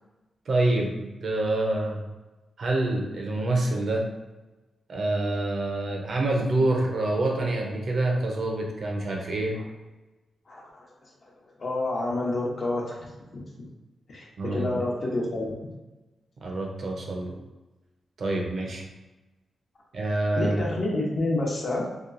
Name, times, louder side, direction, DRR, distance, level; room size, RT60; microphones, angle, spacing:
voice 1, 0.5-2.0 2.6-4.1 4.9-9.6 14.4-14.7 16.4-17.3 18.2-18.8 19.9-20.5, right 2 dB, 60° right, 0 dB, 0.6 m, -26 dB
voice 2, 11.6-13.0 13.3-13.4 14.1-15.6 20.4-21.9, left 2 dB, 50° left, -3 dB, 0.8 m, -28 dB
2.9 x 2.3 x 2.5 m, 1.1 s
cardioid pair, 85°, 0 cm